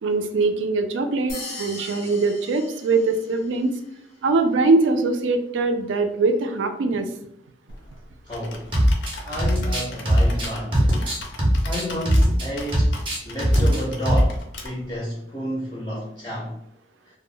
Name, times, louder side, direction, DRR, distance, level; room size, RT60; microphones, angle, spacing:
voice 1, 0.0-3.7 4.2-7.1, right 3 dB, 85° right, 7 dB, 0.4 m, -22 dB
sound 1, 1.3-3.6, left 2 dB, 90° left, 0.9 m, -38 dB
Computer keyboard, 7.7-15.0, left 2 dB, 70° left, 0.5 m, -39 dB
voice 2, 8.3-8.7 9.2-10.9 11.6-16.6, equal, 20° left, -4 dB, 0.4 m, -30 dB
sound 2, 8.7-9.1 9.4-12.5 12.7-13.8 14.0-14.3, equal, 25° right, 0.6 m, -19 dB
2.2 x 2.0 x 3.6 m, 0.77 s
head